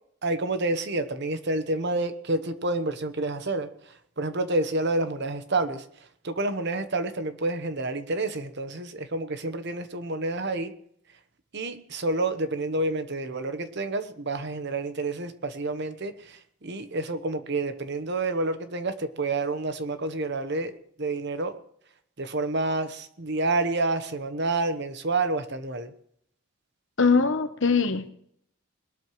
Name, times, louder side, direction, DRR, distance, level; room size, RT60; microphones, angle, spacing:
voice 1, 0.2-3.7 4.2-5.8 6.2-10.7 11.5-21.6 22.2-25.9, right 2 dB, 55° right, 10 dB, 1.0 m, -29 dB
voice 2, 27.0-28.1, left 4 dB, 60° left, 10 dB, 1.0 m, -22 dB
21.5 x 12.5 x 3.2 m, 0.67 s
head